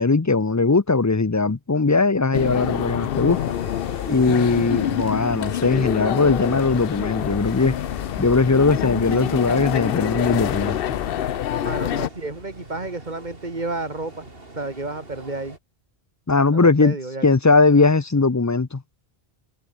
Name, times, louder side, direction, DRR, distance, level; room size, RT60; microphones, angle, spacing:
voice 1, 0.0-3.6 4.1-7.8 8.2-11.0 16.3-17.0 17.2-18.8, left 3 dB, 20° left, 0.6 m, -19 dB
sound 1, 2.3-12.1, left 11 dB, 65° left, 0.8 m, -26 dB
sound 2, 3.3-15.6, right 2 dB, 60° right, 4.3 m, -43 dB
voice 2, 11.6-14.3 14.6-15.6 16.5-17.4, right 2 dB, 45° right, 2.8 m, -31 dB
omnidirectional pair, 1.1 m